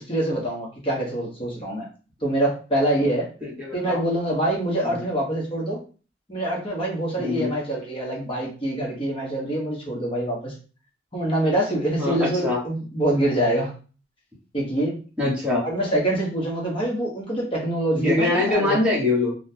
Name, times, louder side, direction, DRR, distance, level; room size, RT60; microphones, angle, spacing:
voice 1, 0.1-1.9 2.2-3.3 3.7-5.8 6.3-10.5 11.1-13.7 14.5-15.0 15.6-18.8, right 1 dB, 30° left, -3 dB, 1.0 m, -25 dB
voice 2, 3.4-4.0 4.8-5.0 7.2-7.5 12.0-12.6 15.2-15.7 17.9-19.3, left 2 dB, 5° right, -6 dB, 1.2 m, -23 dB
3.7 x 2.3 x 2.7 m, 0.37 s
head